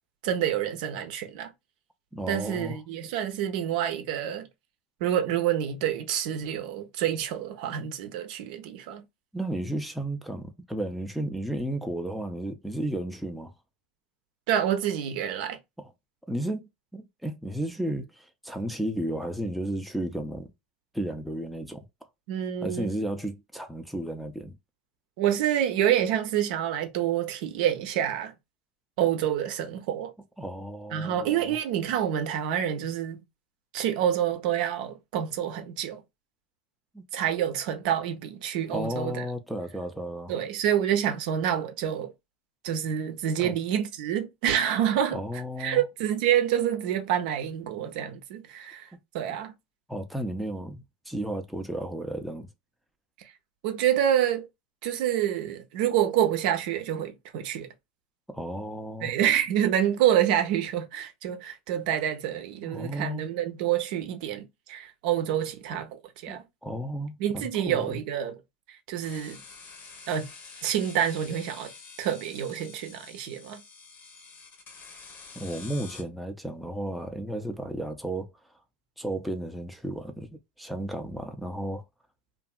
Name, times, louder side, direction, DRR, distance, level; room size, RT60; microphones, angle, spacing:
voice 1, 0.2-1.5 2.3-4.5 5.0-9.0 14.5-15.6 22.3-22.9 25.2-28.3 29.0-30.1 30.9-33.2 33.7-36.0 37.1-39.2 40.3-42.1 42.6-45.2 45.6-48.9 49.1-49.5 53.6-54.5 54.8-57.7 59.0-66.4 67.2-68.4 68.7-69.4 70.1-70.3 70.6-71.7 72.0-73.6, right 10 dB, 65° right, 0.6 m, -27 dB
voice 2, 2.1-2.8 9.3-13.5 15.8-15.9 16.3-20.5 20.9-21.9 22.6-24.5 30.4-31.6 36.9-37.0 38.7-40.4 43.4-43.5 45.1-45.8 49.9-52.5 58.3-59.1 62.6-63.3 66.3-68.0 75.4-78.3 79.0-81.8, right 1 dB, ahead, 0.5 m, -33 dB
sound 1, 69.0-76.0, left 5 dB, 40° left, 0.9 m, -47 dB
2.6 x 2.5 x 2.3 m
hypercardioid pair, 105°, 5 cm